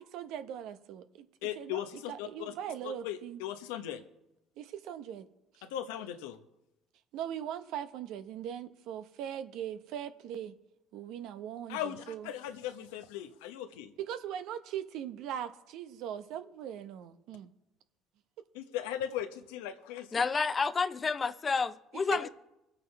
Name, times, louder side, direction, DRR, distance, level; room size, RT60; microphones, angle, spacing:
voice 1, 0.1-1.3 1.6-3.4 4.6-5.2 5.6-5.7 7.1-10.5 10.9-12.3 14.1-17.5 21.9-22.3, right 9 dB, 70° right, 0.9 m, -40 dB
voice 2, 1.4-2.5 2.8-4.0 5.6-6.4 11.7-13.9 18.5-20.2 22.1-22.3, left 11 dB, 85° left, 0.9 m, -38 dB
voice 3, 20.1-22.3, left 5 dB, 30° left, 0.8 m, -30 dB
24.0 x 8.3 x 3.4 m
supercardioid pair, 70°, 0 cm